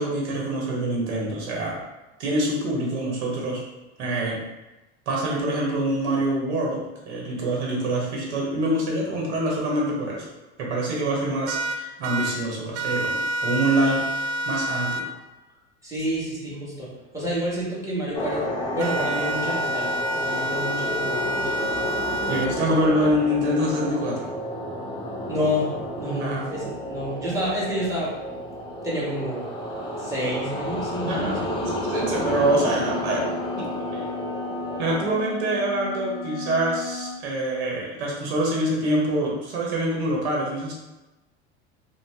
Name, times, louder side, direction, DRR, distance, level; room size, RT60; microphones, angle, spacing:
voice 1, 0.0-1.8 2.2-3.6 4.0-4.4 5.1-10.3 10.6-15.1 22.3-24.3 26.0-26.7 31.0-31.6 31.9-33.2 33.5-34.1 34.8-40.7, right 1 dB, 80° right, -3 dB, 0.9 m, -25 dB
sound 1, 11.5-12.3 12.7-15.0 18.8-22.5, right 1 dB, 60° right, 0.5 m, -28 dB
voice 2, 15.8-16.9 17.1-18.4 18.7-21.5 25.3-25.7 25.9-28.1 28.8-29.4 30.0-31.4, equal, 10° right, -7 dB, 1.2 m, -29 dB
sound 2, 18.1-35.1, equal, 15° left, 0.6 m, -31 dB
sound 3, 32.6-37.2, left 5 dB, 55° left, 0.5 m, -35 dB
2.5 x 2.1 x 3.4 m, 1.0 s
hypercardioid pair, 95°, 34 cm